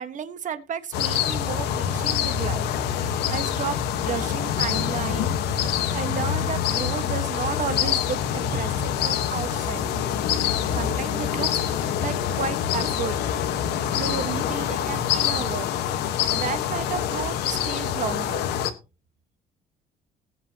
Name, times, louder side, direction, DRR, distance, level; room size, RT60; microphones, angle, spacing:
voice 1, 0.0-2.7 3.0-5.4 5.9-9.9 10.7-13.2 13.9-15.7 16.3-18.4, right 7 dB, 50° right, 11 dB, 1.4 m, -33 dB
sound 1, 0.9-18.7, left 9 dB, 80° left, 1.3 m, -25 dB
19.5 x 8.0 x 2.9 m, 0.29 s
cardioid pair, 110°, 17 cm